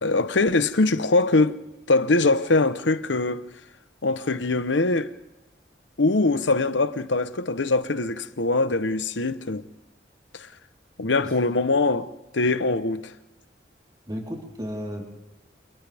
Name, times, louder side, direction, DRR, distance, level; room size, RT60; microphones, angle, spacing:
voice 1, 0.0-1.6 1.9-3.5 4.0-5.1 6.0-9.6 10.3-10.5 11.0-12.1 12.3-13.1, left 3 dB, 90° left, 1.0 m, -22 dB
voice 2, 14.1-15.0, equal, 20° right, 4.1 m, -33 dB
29.5 x 27.5 x 3.6 m
head